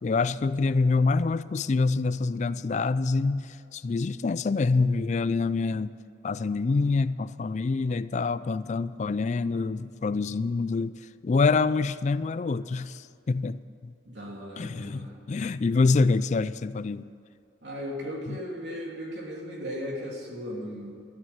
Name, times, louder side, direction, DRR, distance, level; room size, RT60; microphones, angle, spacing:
voice 1, 0.0-5.9 6.2-11.0 11.2-13.9 14.6-17.0 18.3-18.4, left 4 dB, 40° left, 16 dB, 0.3 m, -26 dB
voice 2, 14.0-15.2 17.6-20.9, equal, 75° right, -2 dB, 3.2 m, -36 dB
13.0 x 9.2 x 8.7 m, 2.5 s
head